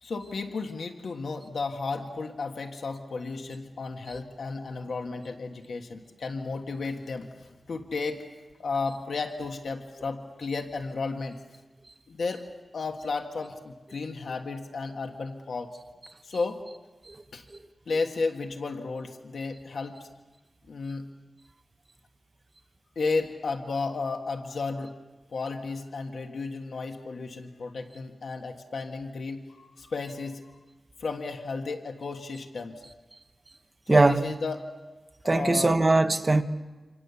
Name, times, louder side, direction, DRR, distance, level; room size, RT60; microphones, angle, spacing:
voice 1, 0.0-8.2 8.6-11.4 12.1-12.4 12.7-15.8 16.2-16.6 17.3-17.4 17.9-20.1 20.7-21.0 22.9-24.9 25.3-30.5 31.0-32.8 33.9-34.7 35.2-35.8, left 4 dB, 80° left, 1.5 m, -33 dB
voice 2, 33.9-34.2 35.2-36.4, right 2 dB, 30° right, 1.2 m, -20 dB
28.0 x 26.5 x 7.0 m
wide cardioid pair, 135°, 0 cm